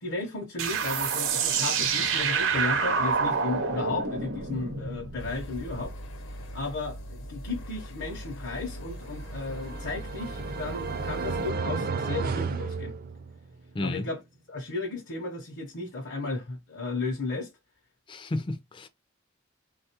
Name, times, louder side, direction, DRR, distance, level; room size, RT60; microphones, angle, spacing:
voice 1, 0.0-6.0 6.5-13.0 13.8-14.2 14.5-17.5, left 3 dB, 60° left, 0.7 m, -34 dB
sound 1, 0.6-5.9, right 5 dB, 90° right, 0.8 m, -28 dB
sound 2, 5.2-11.5, equal, 85° left, 0.9 m, -41 dB
sound 3, 9.1-13.6, right 4 dB, 50° right, 0.4 m, -33 dB
voice 2, 13.7-14.1 18.1-18.9, left 2 dB, 25° left, 0.4 m, -32 dB
3.5 x 2.3 x 2.8 m
head